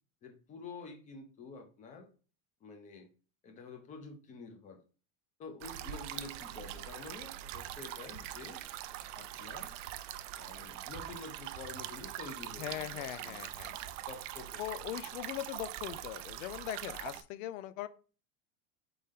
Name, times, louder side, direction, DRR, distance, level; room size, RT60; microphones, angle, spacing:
voice 1, 0.2-2.1 2.6-3.1 3.4-4.8 5.4-8.6 9.1-9.7 10.4-15.1, left 4 dB, 20° left, 5 dB, 0.6 m, -49 dB
sound 1, 5.6-17.2, right 13 dB, 80° right, 0.5 m, -43 dB
voice 2, 12.6-13.7 14.6-17.9, left 13 dB, 85° left, 14 dB, 0.6 m, -40 dB
4.2 x 3.5 x 3.6 m, 0.37 s
supercardioid pair, 165°, 37 cm